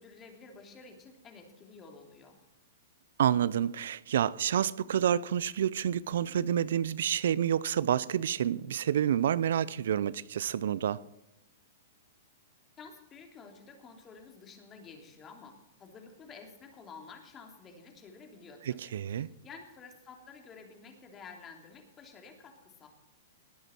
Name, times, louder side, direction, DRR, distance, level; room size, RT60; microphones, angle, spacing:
voice 1, 0.0-2.4 12.8-22.9, left 5 dB, 25° left, 3.0 m, -51 dB
voice 2, 3.2-11.0 18.7-19.3, right 9 dB, 70° right, 0.5 m, -29 dB
19.5 x 9.2 x 4.5 m
hypercardioid pair, 130°, 0 cm